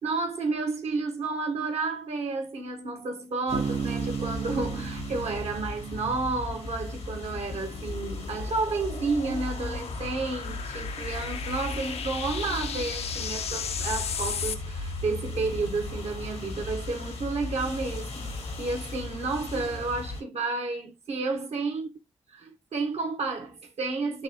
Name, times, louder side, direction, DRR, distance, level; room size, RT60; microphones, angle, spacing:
voice 1, 0.0-21.9 22.7-24.2, right 3 dB, 75° right, 1.1 m, -31 dB
sound 1, 3.5-20.2, left 2 dB, 90° left, 1.3 m, -37 dB
Bass guitar, 3.5-7.0, right 7 dB, 50° right, 0.4 m, -34 dB
sound 2, 7.0-14.6, left 7 dB, 65° left, 0.4 m, -36 dB
4.0 x 2.6 x 4.3 m
supercardioid pair, 50°, 11 cm